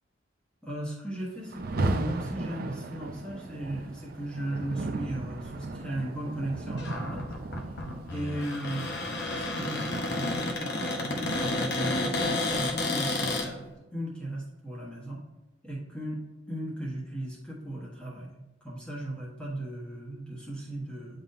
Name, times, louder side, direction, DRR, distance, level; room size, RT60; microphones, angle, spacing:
voice 1, 0.6-7.3 8.1-9.0 9.3-15.2 15.6-16.2 16.5-21.2, right 1 dB, 5° left, -6 dB, 1.2 m, -37 dB
Rain, 1.5-10.6, right 2 dB, 50° right, 0.5 m, -36 dB
Cupboard open or close, 6.8-13.5, left 2 dB, 60° left, 0.9 m, -31 dB
8.9 x 3.9 x 2.7 m, 1.1 s
head